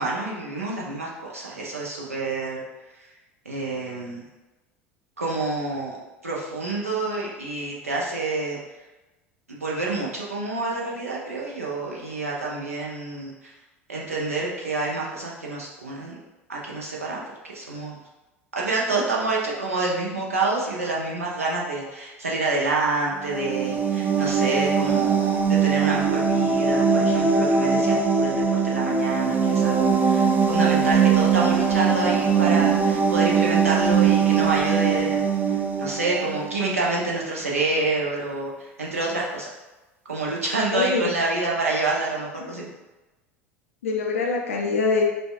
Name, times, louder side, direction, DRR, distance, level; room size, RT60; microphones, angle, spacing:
voice 1, 0.0-2.6 3.0-3.1 3.4-4.2 5.2-6.0 6.2-8.6 9.5-13.5 13.9-16.2 16.5-18.0 18.5-35.2 35.5-39.5 40.0-42.7, right 3 dB, 80° right, -3 dB, 0.8 m, -28 dB
sound 1, 23.2-36.8, right 6 dB, 20° right, 0.4 m, -21 dB
voice 2, 40.7-41.1 43.8-45.1, left 4 dB, 75° left, 1 dB, 0.4 m, -24 dB
5.1 x 2.3 x 2.4 m, 1.1 s
figure-of-eight pair, 75°, 7 cm